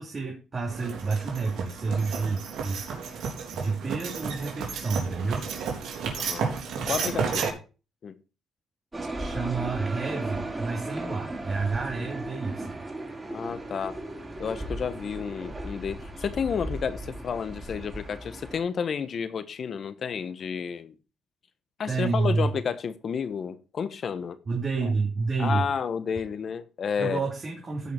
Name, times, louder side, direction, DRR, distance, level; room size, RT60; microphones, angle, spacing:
voice 1, 0.0-2.9 3.5-5.5 9.2-12.8 21.9-22.5 24.5-25.7 27.0-27.9, right 4 dB, 35° right, 3.0 m, -29 dB
sound 1, 0.7-7.5, right 5 dB, 75° right, 3.4 m, -32 dB
voice 2, 6.2-6.5 6.9-7.5 8.0-8.1 13.3-14.0 14.4-20.9 21.8-24.4 24.8-24.9 25.4-27.2, left 6 dB, 55° left, 1.1 m, -31 dB
sound 2, 8.9-18.6, right 1 dB, 20° right, 3.9 m, -36 dB
15.0 x 5.7 x 4.4 m
cardioid pair, 90°, 0 cm